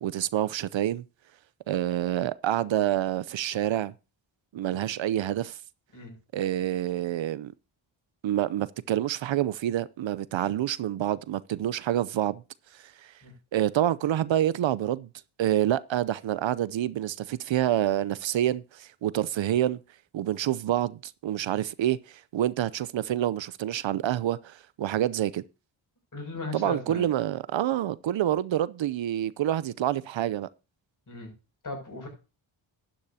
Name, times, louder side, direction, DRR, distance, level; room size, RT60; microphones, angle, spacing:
voice 1, 0.0-1.0 1.7-3.9 4.5-5.6 6.3-7.5 8.2-12.4 12.7-13.1 13.5-15.1 15.4-19.8 20.1-25.4 26.5-30.5, right 12 dB, 65° right, 0.7 m, -27 dB
voice 2, 26.1-27.1 31.1-31.3 31.6-32.1, left 3 dB, 40° left, 6.6 m, -37 dB
11.5 x 10.5 x 2.8 m
cardioid pair, 105°, 49 cm